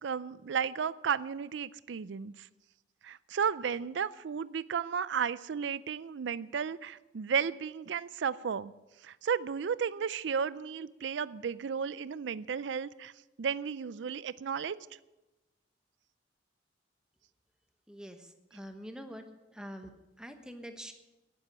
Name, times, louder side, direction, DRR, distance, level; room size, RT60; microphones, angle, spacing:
voice 1, 0.0-2.5 3.0-8.7 9.0-13.1 13.4-14.8, right 7 dB, 75° right, 17 dB, 0.4 m, -33 dB
voice 2, 17.9-19.2 19.5-20.9, equal, 5° right, 6 dB, 1.1 m, -45 dB
10.5 x 10.0 x 9.0 m, 1.1 s
head